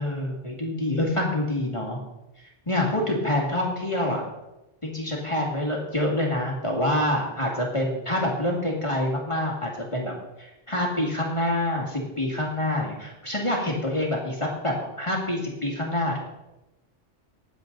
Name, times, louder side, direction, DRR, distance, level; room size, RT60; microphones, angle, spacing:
voice 1, 0.0-2.0 2.4-4.2 4.8-16.2, left 1 dB, 25° left, -2 dB, 2.3 m, -26 dB
19.5 x 7.5 x 4.0 m, 0.97 s
omnidirectional pair, 1.2 m